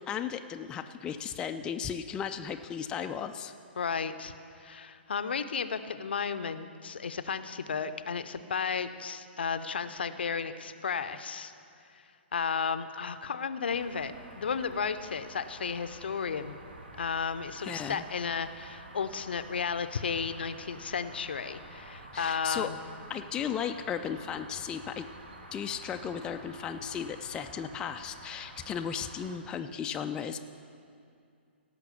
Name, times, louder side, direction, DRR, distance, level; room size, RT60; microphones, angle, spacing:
voice 1, 0.1-3.5 17.6-18.0 22.1-22.7 23.1-25.1 25.5-30.4, left 8 dB, 15° left, 6 dB, 0.3 m, -35 dB
voice 2, 3.8-11.5 11.8-16.5 17.0-22.8, left 6 dB, 60° left, 11 dB, 0.6 m, -33 dB
sound 1, 13.7-29.4, right 1 dB, 65° right, 1.5 m, -49 dB
17.0 x 5.9 x 7.0 m, 2.4 s
figure-of-eight pair, 120°, 6 cm